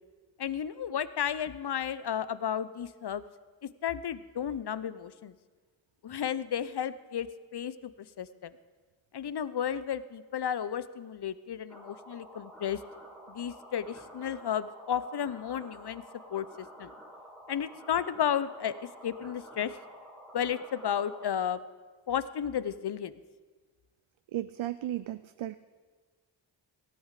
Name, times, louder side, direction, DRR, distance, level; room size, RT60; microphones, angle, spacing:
voice 1, 0.4-3.2 3.8-5.3 6.0-7.3 7.5-7.9 8.2-8.5 9.1-12.8 13.3-16.0 16.3-16.5 16.8-16.9 17.5-18.7 19.0-19.7 20.3-21.6 22.1-23.1, left 9 dB, 55° left, 15 dB, 0.8 m, -33 dB
sound 1, 11.7-21.3, equal, 5° left, 2.7 m, -50 dB
voice 2, 24.3-25.6, right 13 dB, 80° right, 12 dB, 0.6 m, -35 dB
18.0 x 13.5 x 5.0 m, 1.4 s
cardioid pair, 40°, 47 cm